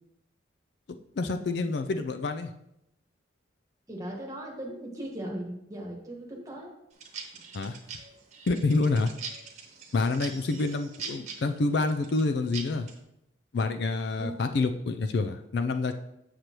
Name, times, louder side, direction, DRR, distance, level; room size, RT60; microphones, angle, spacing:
voice 1, 1.2-2.5 7.5-7.8 8.5-9.1 9.9-12.9 13.5-16.0, left 3 dB, 55° left, 7 dB, 0.4 m, -27 dB
voice 2, 3.9-6.7 14.2-14.3, right 1 dB, 15° right, -1 dB, 1.3 m, -38 dB
sound 1, 6.9-13.0, right 5 dB, 35° right, 1.1 m, -42 dB
7.8 x 6.5 x 2.9 m, 0.81 s
head